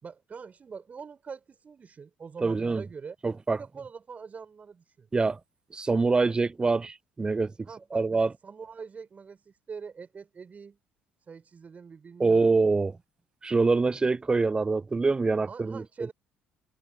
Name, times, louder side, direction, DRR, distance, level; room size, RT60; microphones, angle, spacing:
voice 1, 0.0-3.2 3.5-5.1 7.7-10.8 11.3-12.6 15.5-16.1, right 5 dB, 35° right, 4.8 m, -44 dB
voice 2, 2.4-2.8 3.2-3.6 5.1-5.4 5.7-7.5 7.9-8.3 12.2-12.9 13.4-15.8, right 3 dB, 20° right, 0.3 m, -25 dB
hypercardioid pair, 55°, 4 cm